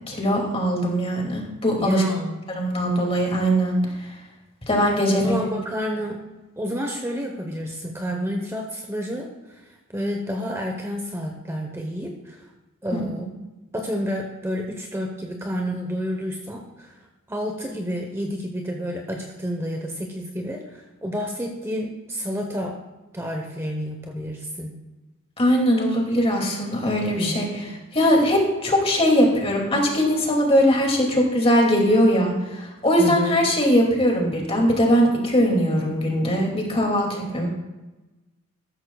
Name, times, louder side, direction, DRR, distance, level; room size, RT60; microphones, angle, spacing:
voice 1, 0.1-2.0 2.5-3.7 4.7-5.3 12.9-13.0 25.4-27.5 27.9-37.5, equal, 25° left, 0 dB, 2.5 m, -20 dB
voice 2, 1.8-2.4 5.1-6.2 6.6-9.6 9.9-12.4 12.8-13.3 13.7-16.9 17.3-22.8 23.1-24.7 27.1-27.6 33.0-33.4, equal, 10° right, 2 dB, 1.0 m, -29 dB
14.0 x 13.0 x 2.4 m, 1.1 s
head